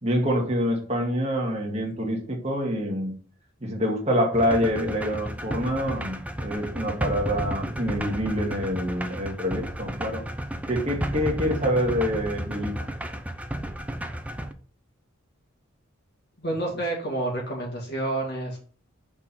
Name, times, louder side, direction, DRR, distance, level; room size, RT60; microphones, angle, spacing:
voice 1, 0.0-3.2 3.6-10.2 10.7-12.7, equal, 30° right, 0 dB, 1.8 m, -26 dB
sound 1, 4.3-14.5, right 1 dB, 5° right, 0.5 m, -32 dB
voice 2, 16.4-18.6, right 2 dB, 55° left, -1 dB, 2.2 m, -29 dB
6.1 x 4.4 x 5.5 m, 0.43 s
head